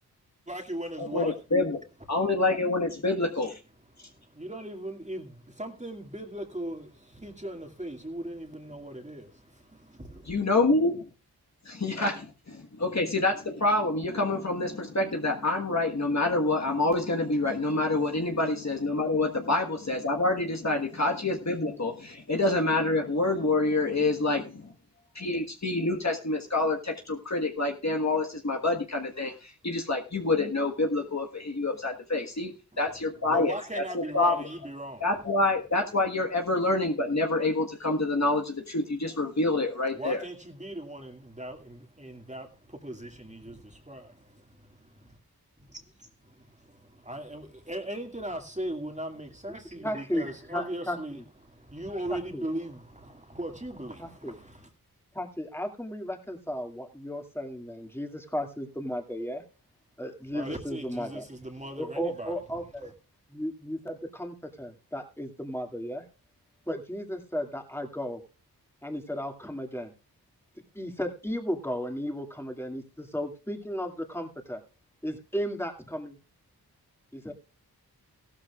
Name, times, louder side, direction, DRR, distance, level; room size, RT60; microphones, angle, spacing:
voice 1, 0.5-1.4 3.9-10.3 32.7-35.0 40.0-45.2 46.2-54.7 60.3-62.3 62.8-62.9, right 1 dB, 20° right, 2.2 m, -39 dB
voice 2, 1.0-1.8 2.1-3.6 10.3-11.0 11.8-12.2 12.5-24.7 25.1-34.3 35.0-40.2, left 2 dB, 45° left, 1.5 m, -27 dB
voice 3, 49.8-51.2 52.1-52.4 54.0-54.4 55.1-59.4 60.0-61.2 61.8-62.9 63.3-66.0 66.7-68.2 68.8-69.9 70.7-74.6 75.0-76.2 77.1-77.3, equal, 5° left, 2.3 m, -34 dB
15.0 x 12.5 x 2.4 m
cardioid pair, 45°, 39 cm